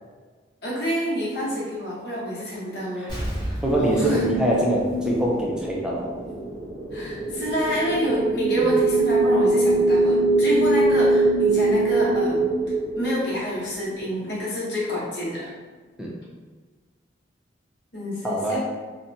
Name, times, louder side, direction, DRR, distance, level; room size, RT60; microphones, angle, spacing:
voice 1, 0.6-3.1 3.4-4.2 6.9-12.5 12.9-15.4 17.9-18.6, equal, 65° left, -7 dB, 0.9 m, -28 dB
Explosion, 3.1-5.7 6.0-6.1, equal, 25° left, 0.8 m, -33 dB
voice 2, 3.6-6.1 16.0-16.2 18.2-18.6, right 1 dB, 5° right, -3 dB, 0.4 m, -23 dB
sound 1, 3.9-13.7, right 2 dB, 70° right, 0.6 m, -22 dB
2.7 x 2.1 x 2.6 m, 1.4 s
head